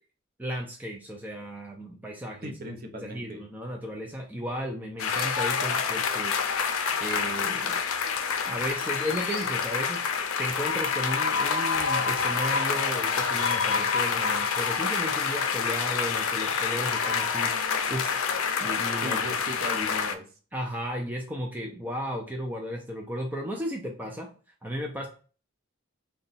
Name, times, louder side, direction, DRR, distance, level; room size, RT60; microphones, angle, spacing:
voice 1, 0.4-2.5 3.0-6.3 7.0-7.8 8.5-17.5 17.9-18.2 18.6-19.2 20.5-24.3 24.6-25.1, equal, 10° right, 0 dB, 0.4 m, -34 dB
voice 2, 2.4-3.4 19.0-20.3, equal, 45° right, 4 dB, 0.7 m, -37 dB
sound 1, 5.0-20.1, left 6 dB, 80° left, 0.5 m, -27 dB
3.8 x 2.2 x 3.9 m, 0.38 s
head